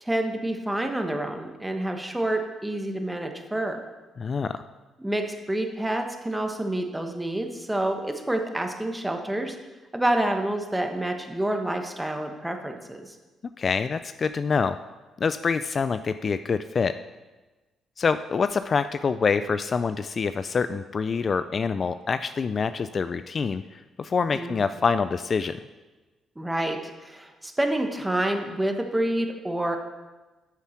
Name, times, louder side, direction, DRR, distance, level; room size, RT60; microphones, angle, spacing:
voice 1, 0.0-3.8 5.0-9.5 9.9-13.1 24.3-24.6 26.4-29.8, right 1 dB, 10° right, 4 dB, 1.2 m, -28 dB
voice 2, 4.2-4.6 13.6-14.8 15.2-17.0 18.0-25.6, left 5 dB, 40° left, 12 dB, 0.3 m, -26 dB
9.1 x 7.1 x 5.9 m, 1.2 s
cardioid pair, 95°, 0 cm